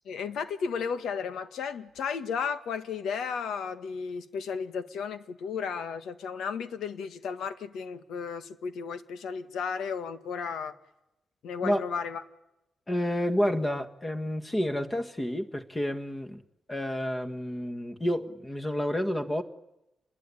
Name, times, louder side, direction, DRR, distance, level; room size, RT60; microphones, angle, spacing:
voice 1, 0.1-10.7 11.4-12.2, left 6 dB, 80° left, 1.6 m, -34 dB
voice 2, 12.9-16.4 16.7-19.4, equal, 15° left, 1.7 m, -29 dB
28.0 x 21.0 x 10.0 m
cardioid pair, 140°, 0 cm